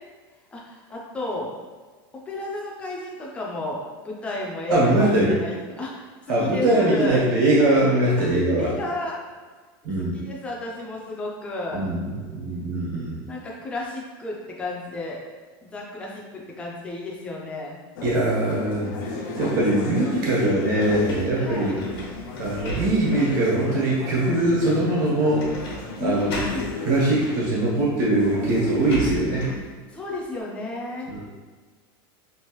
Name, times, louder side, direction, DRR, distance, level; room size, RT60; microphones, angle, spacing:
voice 1, 0.5-1.5 2.3-7.2 8.2-8.3 8.6-9.2 10.0-11.9 13.3-15.2 15.6-17.8 21.4-21.8 26.0-26.8 29.9-31.1, left 2 dB, 10° left, -3 dB, 0.4 m, -33 dB
voice 2, 4.7-5.4 6.3-8.7 9.8-10.2 11.7-13.2 18.0-18.9 19.4-21.7 22.4-25.5 26.0-26.3 26.8-29.4 31.1-31.3, right 1 dB, 60° right, -6 dB, 1.3 m, -21 dB
sound 1, 18.0-29.1, left 3 dB, 65° left, 0.5 m, -35 dB
sound 2, 20.8-23.3 23.9-24.0 25.4-25.8 26.1-26.7 27.8-27.9 28.2-29.7, right 1 dB, 90° left, 1.1 m, -35 dB
3.1 x 2.5 x 3.0 m, 1.4 s
supercardioid pair, 170°, 12 cm